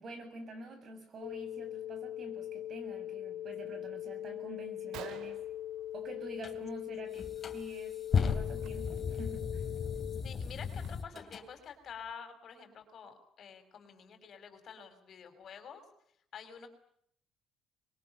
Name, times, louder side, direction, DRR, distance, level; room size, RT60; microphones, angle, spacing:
voice 1, 0.0-5.4 5.9-9.6, right 1 dB, 45° right, 8 dB, 7.5 m, -47 dB
sound 1, 1.2-10.2, left 12 dB, 90° left, 1.9 m, -41 dB
Gunshot gunfire, 4.7-4.8 4.9-6.5 6.9-7.2 7.5-7.7 8.5-8.7 9.2-9.3 9.8-11.3, right 10 dB, 75° right, 2.0 m, -51 dB
sound 2, 6.4-6.6 7.2-11.5, left 6 dB, 35° left, 3.0 m, -35 dB
voice 2, 7.0-7.3 10.2-15.9 16.3-16.7, left 6 dB, 50° left, 7 dB, 5.4 m, -49 dB
25.5 x 22.0 x 9.2 m, 0.69 s
cardioid pair, 105°, 0 cm